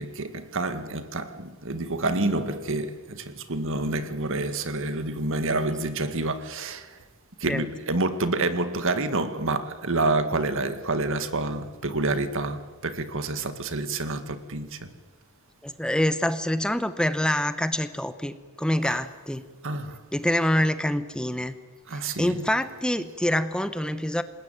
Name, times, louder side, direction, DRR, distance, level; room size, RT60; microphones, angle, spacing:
voice 1, 0.0-7.0 7.4-14.9 18.8-19.0 19.6-20.0 21.9-22.5, right 2 dB, 65° right, 1.9 m, -28 dB
voice 2, 15.6-19.4 20.1-21.5 21.9-24.2, left 1 dB, 5° left, 0.9 m, -26 dB
27.5 x 20.0 x 9.2 m
head